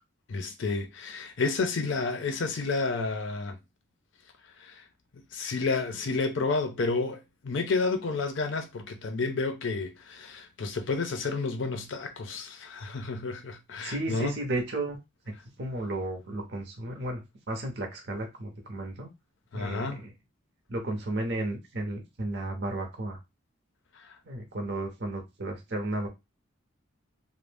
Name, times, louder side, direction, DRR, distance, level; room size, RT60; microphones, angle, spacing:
voice 1, 0.3-3.6 4.6-4.8 5.3-14.4 19.5-20.0 23.9-24.2, left 3 dB, 65° left, 0.5 m, -30 dB
voice 2, 13.8-15.0 15.6-17.2 17.5-19.1 19.5-20.1 20.7-23.2 24.3-26.1, right 2 dB, 55° right, 0.7 m, -33 dB
2.5 x 2.0 x 3.2 m
head